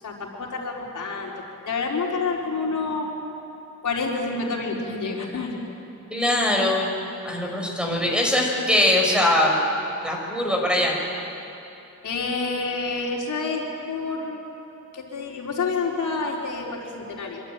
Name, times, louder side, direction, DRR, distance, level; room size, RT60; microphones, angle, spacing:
voice 1, 0.0-1.3 1.7-3.1 3.8-5.6 7.9-8.1 12.0-14.4 14.9-17.4, left 4 dB, 75° left, -1 dB, 4.5 m, -28 dB
voice 2, 6.1-6.9 7.2-9.5 10.0-10.9, left 1 dB, 5° right, -1 dB, 5.1 m, -21 dB
25.5 x 25.0 x 9.1 m, 3.0 s
wide cardioid pair, 175°, 30 cm